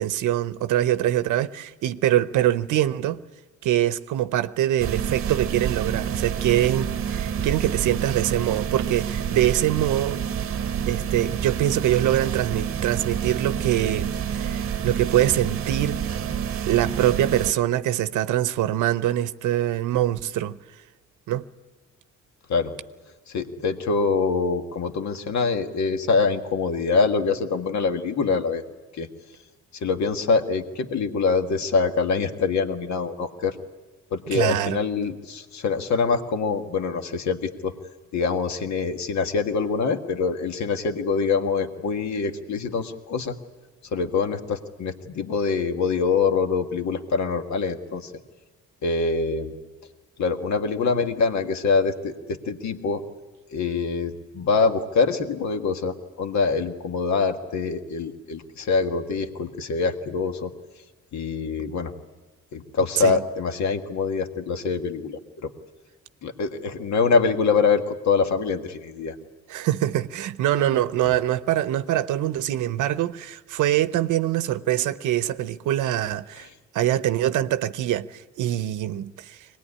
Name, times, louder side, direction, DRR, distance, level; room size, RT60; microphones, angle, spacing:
voice 1, 0.0-3.2 3.6-10.2 10.9-16.0 16.7-20.6 21.3-21.4 34.3-34.8 63.0-63.2 69.5-76.5 76.7-79.5, right 12 dB, 80° right, 0.8 m, -24 dB
sound 1, 4.8-17.5, right 8 dB, 50° right, 0.9 m, -28 dB
voice 2, 23.3-28.6 29.0-29.1 29.8-33.6 34.1-37.8 38.1-43.4 43.9-48.1 48.8-49.5 50.2-53.0 53.5-60.5 61.1-61.9 62.5-65.5 66.2-69.2, left 4 dB, 65° left, 1.7 m, -24 dB
23.0 x 19.0 x 9.9 m
cardioid pair, 90°, 30 cm